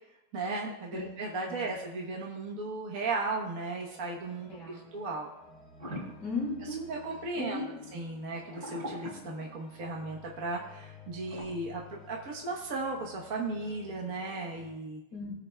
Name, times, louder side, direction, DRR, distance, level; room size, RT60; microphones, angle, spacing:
voice 1, 0.3-5.3 6.9-7.6 7.9-15.0, right 3 dB, 50° right, -1 dB, 1.4 m, -36 dB
sound 1, 3.3-14.8, left 3 dB, 20° left, 2.2 m, -54 dB
voice 2, 4.5-4.8 6.2-6.9 7.4-7.8 15.1-15.3, left 3 dB, 45° left, -4 dB, 2.5 m, -36 dB
sound 2, 5.8-7.2 8.3-10.0 11.3-11.4, equal, 35° right, 3.9 m, -42 dB
18.0 x 9.0 x 2.2 m, 0.91 s
omnidirectional pair, 2.1 m